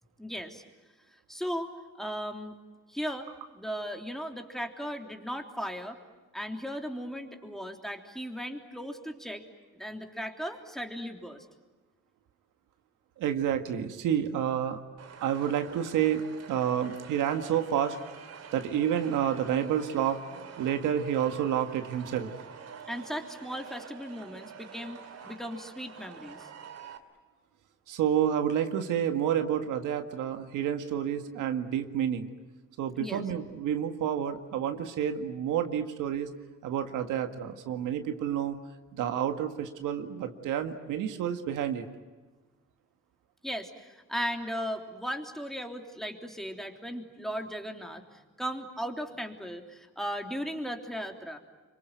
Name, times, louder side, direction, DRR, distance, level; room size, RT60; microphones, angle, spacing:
voice 1, 0.2-0.6 1.3-1.7 2.0-2.6 2.9-3.3 3.5-6.0 6.3-9.4 9.7-11.4 22.9-26.5 33.0-33.2 43.4-51.4, equal, ahead, 4 dB, 3.3 m, -37 dB
voice 2, 13.2-14.8 15.2-18.0 18.5-20.2 20.6-22.3 27.9-32.3 32.8-36.3 36.6-38.6 38.9-41.9, right 9 dB, 90° right, 7 dB, 1.9 m, -29 dB
sound 1, 15.0-27.0, right 6 dB, 55° right, 2.6 m, -47 dB
26.0 x 24.0 x 9.4 m, 1.3 s
cardioid pair, 90°, 30 cm